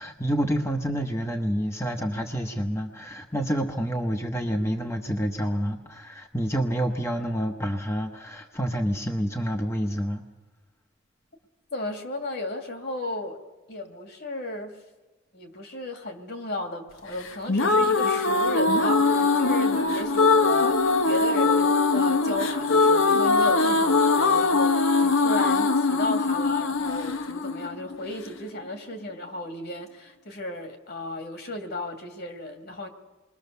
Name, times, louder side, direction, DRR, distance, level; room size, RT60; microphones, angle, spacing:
voice 1, 0.0-10.2, equal, 15° left, 3 dB, 1.1 m, -28 dB
voice 2, 11.7-13.4 13.7-14.8 15.3-32.9, left 2 dB, 55° left, 5 dB, 2.7 m, -34 dB
sound 1, 17.3-28.3, left 3 dB, 80° left, 1.2 m, -22 dB
28.0 x 22.0 x 6.9 m, 1.2 s
head